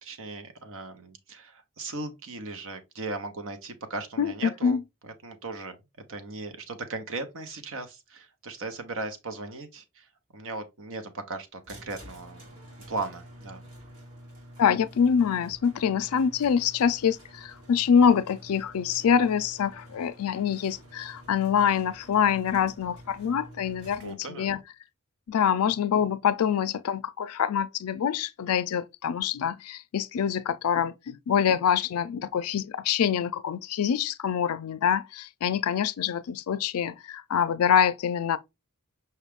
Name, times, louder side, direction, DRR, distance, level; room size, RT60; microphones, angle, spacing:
voice 1, 0.0-4.8 5.0-5.8 6.1-10.1 10.3-12.5 12.9-13.6 24.0-24.6, right 3 dB, 65° right, 0.8 m, -37 dB
voice 2, 4.2-4.8 14.6-24.6 25.3-38.4, left 7 dB, 70° left, 0.4 m, -25 dB
sound 1, 11.6-24.1, equal, 85° right, 2.1 m, -49 dB
5.6 x 2.4 x 3.4 m
head